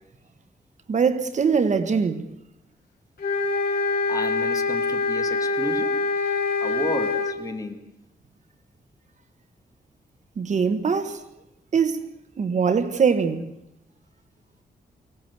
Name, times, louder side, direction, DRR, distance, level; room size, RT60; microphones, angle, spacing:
voice 1, 0.9-2.3 10.4-11.2 11.7-12.0 12.4-13.5, right 6 dB, 50° right, 1.3 m, -22 dB
sound 1, 3.2-7.4, left 3 dB, 75° left, 2.9 m, -24 dB
voice 2, 4.1-5.9 6.6-7.8, left 2 dB, 20° left, 1.8 m, -32 dB
23.5 x 18.0 x 8.1 m
wide cardioid pair, 145°, 16 cm